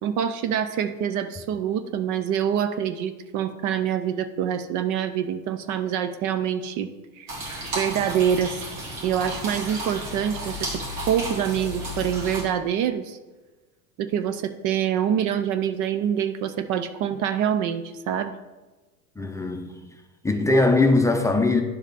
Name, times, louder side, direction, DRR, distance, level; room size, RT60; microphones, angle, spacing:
voice 1, 0.0-6.9 7.2-7.3 7.8-8.6 9.0-13.2 14.0-18.3, right 9 dB, 45° right, 0.6 m, -26 dB
sound 1, 7.3-12.4, equal, 80° right, 3.0 m, -33 dB
voice 2, 19.2-19.8 20.2-21.6, left 2 dB, 5° left, 0.7 m, -20 dB
10.5 x 5.0 x 4.1 m
hypercardioid pair, 90°, 43 cm